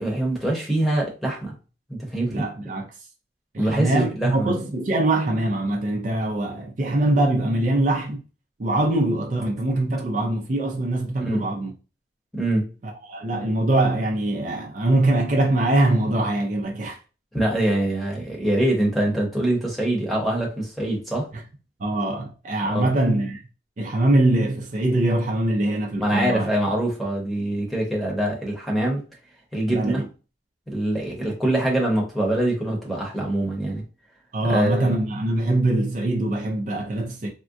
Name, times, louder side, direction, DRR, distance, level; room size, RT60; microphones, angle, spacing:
voice 1, 0.0-1.5 1.9-2.4 3.6-4.5 11.2-11.4 12.3-12.7 17.3-21.3 22.7-22.9 26.0-29.0 29.5-30.0 30.7-33.8 34.4-34.9, right 1 dB, ahead, 0.9 m, -24 dB
voice 2, 2.3-2.9 3.5-8.2 8.6-11.7 12.8-17.0 21.8-23.4 23.8-26.5 29.7-30.0 34.3-37.3, right 2 dB, 45° right, 0.5 m, -23 dB
3.6 x 2.2 x 2.6 m
head